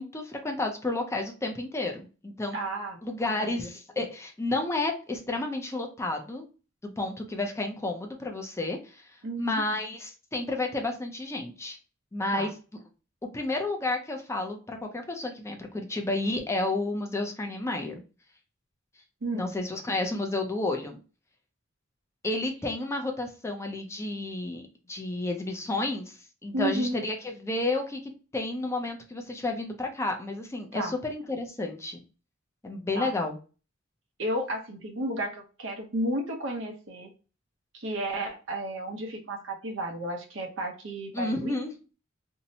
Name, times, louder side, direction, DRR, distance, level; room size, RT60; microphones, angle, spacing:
voice 1, 0.0-2.6 3.0-6.5 6.8-11.8 12.1-12.5 13.3-18.0 19.3-21.0 22.2-32.0 32.6-33.4 41.1-41.7, left 2 dB, 15° left, 3 dB, 0.4 m, -31 dB
voice 2, 2.5-3.0 3.4-3.7 9.2-9.6 12.3-12.5 19.2-19.5 26.5-27.0 30.7-30.9 32.9-33.1 34.2-37.1 37.7-41.5, right 1 dB, 70° right, 3 dB, 0.7 m, -32 dB
2.7 x 2.1 x 2.7 m, 0.33 s
head